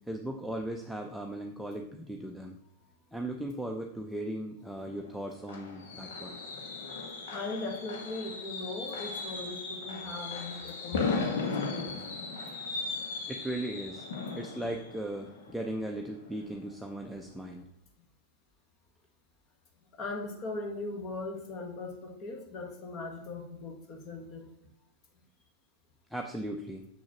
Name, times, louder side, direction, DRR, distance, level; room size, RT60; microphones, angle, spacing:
voice 1, 0.1-2.6 3.1-6.4 13.3-14.0 14.4-17.7 26.1-26.9, right 1 dB, ahead, 1 dB, 0.6 m, -37 dB
Fireworks, 4.8-16.5 16.9-17.2 17.4-17.5, left 4 dB, 60° left, 1.0 m, -37 dB
voice 2, 7.3-12.0 19.9-24.5, left 3 dB, 35° left, 3 dB, 1.4 m, -39 dB
7.0 x 6.3 x 2.9 m, 0.80 s
figure-of-eight pair, 90°, 0 cm